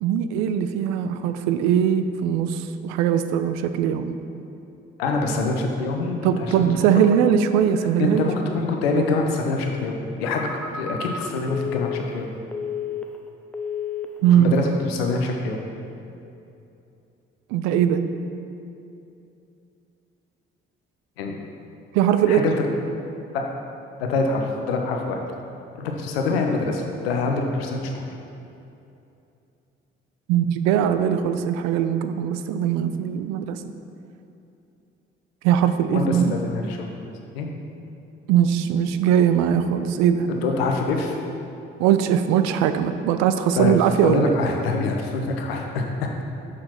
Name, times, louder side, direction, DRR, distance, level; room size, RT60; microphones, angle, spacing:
voice 1, 0.0-4.2 6.2-8.3 14.2-14.6 17.5-18.1 21.9-22.4 30.3-33.6 35.4-36.3 38.3-40.3 41.8-44.4, right 9 dB, 65° right, 10 dB, 0.4 m, -20 dB
voice 2, 5.0-6.7 8.0-12.3 14.3-15.6 21.2-21.3 22.3-22.6 23.3-23.5 24.0-25.2 25.7-28.0 35.9-36.9 37.3-37.5 40.4-41.2 43.5-43.8 44.0-46.1, left 3 dB, 80° left, 2 dB, 0.7 m, -25 dB
Telephone, 10.2-13.3 13.5-14.2 14.6-14.9, left 6 dB, 5° left, 0.6 m, -32 dB
6.2 x 5.7 x 4.3 m, 2.7 s
figure-of-eight pair, 40°, 30 cm